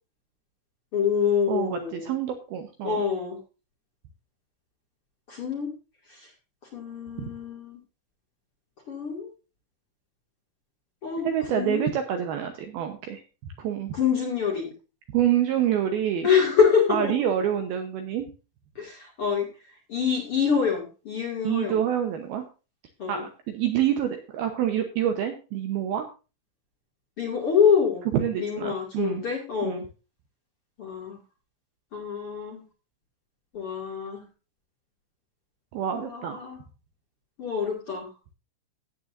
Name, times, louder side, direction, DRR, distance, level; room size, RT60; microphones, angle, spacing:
voice 1, 0.9-2.1 2.8-3.4 5.3-5.7 6.1-6.3 6.7-7.8 8.9-9.3 11.0-11.9 13.9-14.7 16.2-17.1 18.8-19.5 19.9-21.8 23.0-23.2 27.2-28.1 28.4-29.8 30.8-31.2 31.9-32.6 33.5-34.2 35.9-36.6 37.4-38.1, left 6 dB, 40° left, 0 dB, 2.4 m, -26 dB
voice 2, 1.5-3.0 7.2-7.3 11.2-13.2 13.6-13.9 15.1-16.3 16.9-18.3 21.4-22.4 23.1-26.1 28.1-29.2 29.6-29.8 35.7-36.4, right 10 dB, 75° right, 6 dB, 2.4 m, -27 dB
16.5 x 8.7 x 2.6 m, 0.31 s
omnidirectional pair, 5.4 m